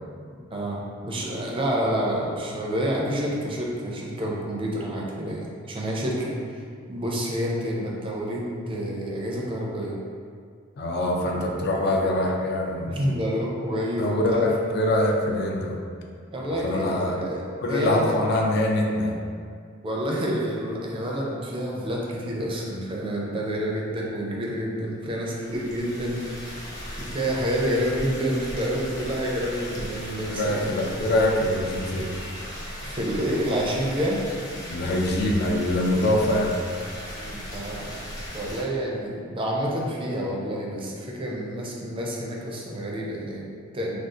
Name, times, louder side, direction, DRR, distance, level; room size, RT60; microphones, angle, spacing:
voice 1, 0.5-6.3 6.9-10.0 12.9-14.5 16.3-17.4 17.7-18.2 19.8-26.7 27.0-30.7 32.8-34.3 37.2-38.0 38.3-44.0, equal, 25° right, -3 dB, 0.4 m, -28 dB
voice 2, 10.8-13.0 14.0-15.8 16.5-17.2 17.6-19.2 30.3-32.2 34.7-36.6, left 1 dB, 55° left, 0 dB, 0.4 m, -24 dB
sound 1, 25.2-38.6, equal, 20° left, 0.6 m, -37 dB
2.5 x 2.3 x 3.7 m, 2.1 s
head